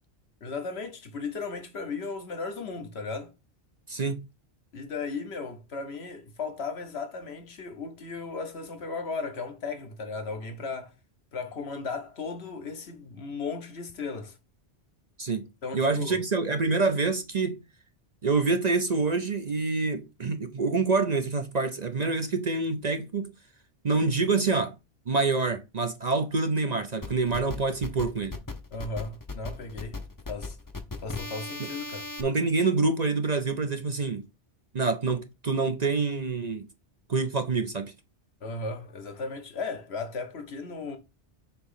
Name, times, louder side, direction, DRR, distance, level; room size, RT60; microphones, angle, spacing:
voice 1, 0.4-3.3 4.7-10.9 11.3-14.4 15.6-16.2 28.7-30.0 30.3-30.6 31.0-32.1 38.4-41.0, left 4 dB, 65° left, 1.3 m, -36 dB
voice 2, 3.9-4.2 15.2-15.4 15.7-17.6 18.2-23.3 23.8-24.7 25.1-28.4 31.6-31.7 32.2-34.2 34.7-36.7 37.1-37.9, right 3 dB, 45° right, 0.7 m, -26 dB
sound 1, 27.0-32.2, left 3 dB, 20° left, 0.7 m, -37 dB
6.9 x 3.0 x 5.6 m
omnidirectional pair, 1.2 m